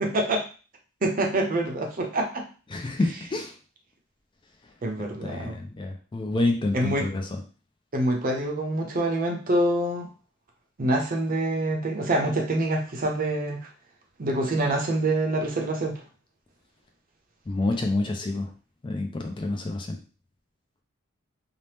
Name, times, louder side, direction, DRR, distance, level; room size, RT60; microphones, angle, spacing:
voice 1, 0.0-0.4 1.0-2.4 4.8-5.6 6.7-7.1 7.9-10.1 10.8-13.6 14.2-16.0, right 1 dB, 45° right, 2 dB, 0.6 m, -26 dB
voice 2, 2.7-3.5 5.0-7.4 17.5-18.5 18.8-20.0, left 2 dB, 25° left, 3 dB, 0.3 m, -28 dB
2.8 x 2.0 x 3.3 m, 0.36 s
head